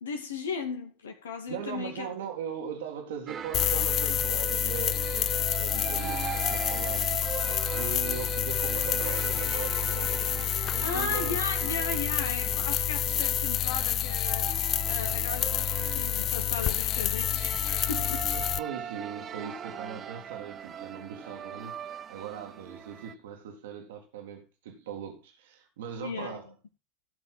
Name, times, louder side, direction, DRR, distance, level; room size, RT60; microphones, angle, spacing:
voice 1, 0.0-2.1 10.8-14.5 14.9-18.3 26.0-26.4, left 4 dB, 75° left, 2.3 m, -36 dB
voice 2, 1.5-7.1 7.7-10.2 10.7-11.4 18.3-26.5, right 8 dB, 70° right, 2.4 m, -40 dB
sound 1, 3.3-23.1, right 8 dB, 35° right, 0.9 m, -39 dB
sound 2, 3.5-18.6, left 12 dB, 45° left, 0.5 m, -28 dB
16.5 x 5.6 x 3.8 m
figure-of-eight pair, 75°, 0 cm